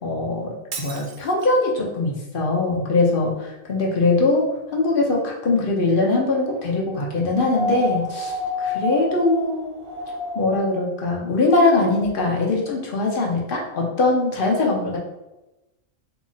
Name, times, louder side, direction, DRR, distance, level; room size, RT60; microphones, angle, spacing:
voice 1, 0.0-4.5 4.7-9.8 10.3-15.0, left 3 dB, 45° left, -1 dB, 1.0 m, -21 dB
Shatter, 0.7-1.7, right 6 dB, 65° right, 0.5 m, -36 dB
sound 1, 7.4-10.6 12.0-12.1, left 1 dB, 35° right, 0.7 m, -28 dB
3.6 x 2.9 x 4.0 m, 0.99 s
omnidirectional pair, 1.4 m